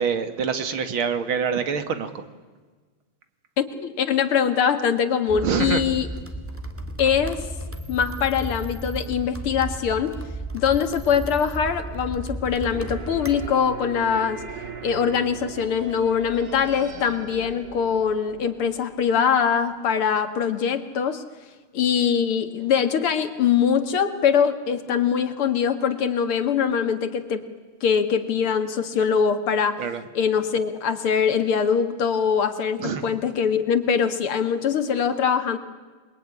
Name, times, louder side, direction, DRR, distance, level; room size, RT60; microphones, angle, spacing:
voice 1, 0.0-2.2 5.4-5.8 29.8-30.0 32.8-33.1, right 6 dB, 70° right, 9 dB, 2.5 m, -25 dB
voice 2, 3.6-6.1 7.0-7.4 7.9-10.1 10.5-14.4 14.8-21.2 21.7-27.4 27.8-29.8 30.1-35.6, left 7 dB, 75° left, 9 dB, 2.7 m, -23 dB
sound 1, 5.3-13.5, right 1 dB, 5° right, 1.8 m, -34 dB
sound 2, 12.7-19.5, right 5 dB, 55° right, 2.7 m, -39 dB
28.0 x 22.0 x 9.8 m, 1.4 s
omnidirectional pair, 2.4 m